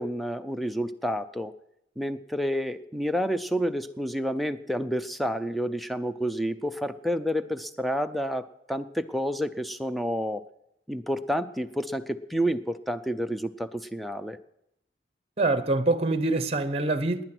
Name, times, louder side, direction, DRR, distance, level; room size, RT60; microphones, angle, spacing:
voice 1, 0.0-1.5 2.0-10.4 10.9-14.4, equal, ahead, 0.5 m, -29 dB
voice 2, 15.4-17.2, right 2 dB, 35° right, 0.8 m, -25 dB
18.5 x 9.9 x 6.1 m
head